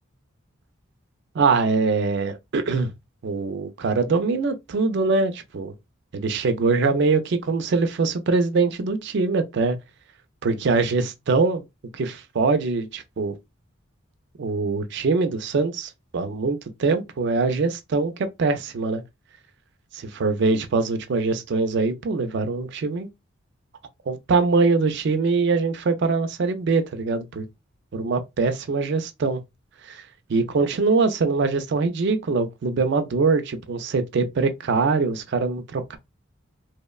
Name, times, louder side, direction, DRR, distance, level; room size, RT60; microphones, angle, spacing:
voice 1, 1.3-2.9 3.2-5.7 6.1-9.8 10.4-11.6 11.9-13.3 14.4-19.0 20.1-23.1 24.1-27.4 27.9-29.4 29.9-30.0 30.3-36.0, right 4 dB, 55° right, 0.4 m, -23 dB
2.9 x 2.1 x 2.2 m
head